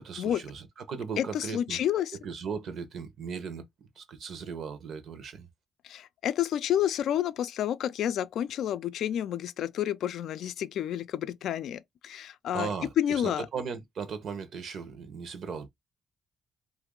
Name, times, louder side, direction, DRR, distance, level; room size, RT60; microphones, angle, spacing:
voice 1, 0.0-1.8 2.2-5.5 12.5-15.7, right 6 dB, 65° right, 0.8 m, -37 dB
voice 2, 1.2-2.2 5.8-12.7 13.0-13.5, left 10 dB, 75° left, 0.3 m, -30 dB
2.8 x 2.6 x 3.7 m
cardioid pair, 90°, 0 cm